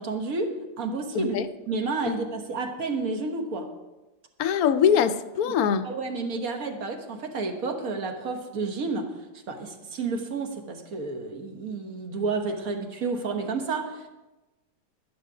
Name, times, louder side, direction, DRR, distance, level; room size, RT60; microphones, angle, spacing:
voice 1, 0.0-1.4 1.7-3.7 5.4-5.6 5.8-9.1 9.5-14.1, right 3 dB, 55° right, 1.7 m, -30 dB
voice 2, 1.1-1.5 4.4-5.9, left 8 dB, 65° left, 1.0 m, -22 dB
12.5 x 9.7 x 4.9 m
omnidirectional pair, 1.9 m